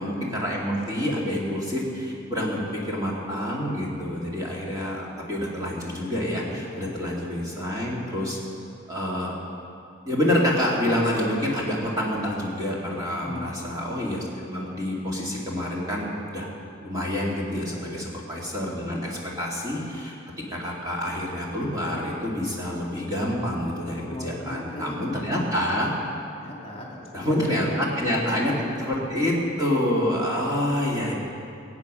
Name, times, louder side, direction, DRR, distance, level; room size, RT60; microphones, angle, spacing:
voice 1, 0.0-8.4 8.9-9.4 10.1-16.5 16.8-20.2 20.5-25.9 27.1-31.1, left 1 dB, 20° right, -5 dB, 2.4 m, -27 dB
voice 2, 6.4-6.9 13.1-13.7 17.5-17.9 23.9-25.6 26.3-27.8, left 1 dB, 30° left, -2 dB, 2.4 m, -37 dB
21.5 x 8.5 x 6.2 m, 2.5 s
head